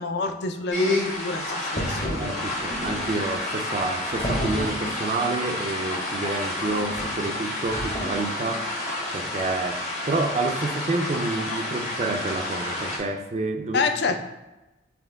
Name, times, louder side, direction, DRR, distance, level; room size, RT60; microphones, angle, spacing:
voice 1, 0.0-2.9 13.7-14.2, left 4 dB, 60° left, 6 dB, 0.4 m, -29 dB
sound 1, 0.7-13.0, left 1 dB, 40° left, 1.1 m, -29 dB
voice 2, 2.1-8.7 9.1-13.9, right 2 dB, 35° right, 6 dB, 0.3 m, -29 dB
4.2 x 2.9 x 3.4 m, 1.0 s
head